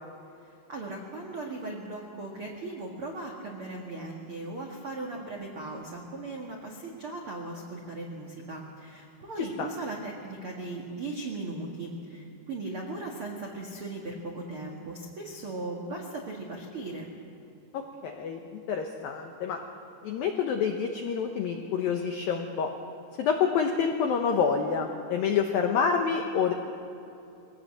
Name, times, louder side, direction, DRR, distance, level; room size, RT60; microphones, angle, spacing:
voice 1, 0.7-17.1, right 2 dB, 70° right, -1 dB, 1.2 m, -38 dB
voice 2, 17.7-19.6 20.0-22.7 23.2-26.5, left 6 dB, 80° left, 3 dB, 2.0 m, -27 dB
22.5 x 17.5 x 7.6 m, 2.7 s
omnidirectional pair, 5.7 m